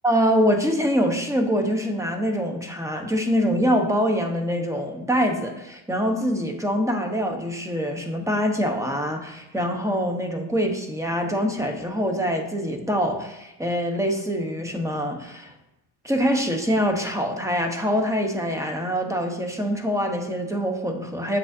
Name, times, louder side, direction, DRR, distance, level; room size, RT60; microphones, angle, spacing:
voice 1, 0.0-15.5 16.0-21.4, equal, 5° right, 4 dB, 1.1 m, -24 dB
7.8 x 6.2 x 2.7 m, 0.93 s
cardioid pair, 80°, 47 cm